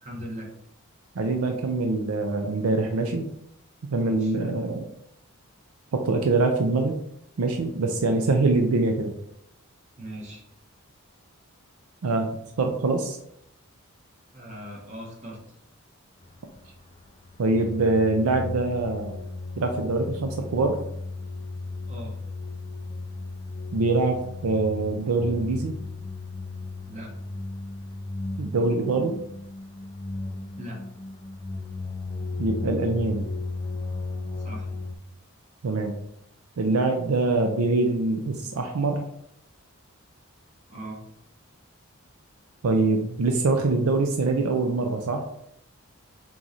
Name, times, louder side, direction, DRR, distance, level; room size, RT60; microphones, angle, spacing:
voice 1, 0.0-0.5 4.0-4.3 10.0-10.4 14.3-15.4 21.9-22.1 26.9-27.1 30.6-30.8 34.4-34.7 40.7-41.0, equal, 35° right, -2 dB, 1.1 m, -39 dB
voice 2, 1.2-3.3 3.9-4.9 5.9-6.9 7.4-9.1 12.0-12.3 12.6-13.2 17.4-19.2 19.6-20.8 23.7-25.7 28.4-29.1 32.4-33.3 35.6-36.0 36.6-39.0 42.6-45.3, right 3 dB, 75° right, 4 dB, 0.5 m, -24 dB
sound 1, 16.2-35.0, left 3 dB, 25° left, 0.3 m, -35 dB
3.6 x 3.0 x 3.9 m, 0.74 s
head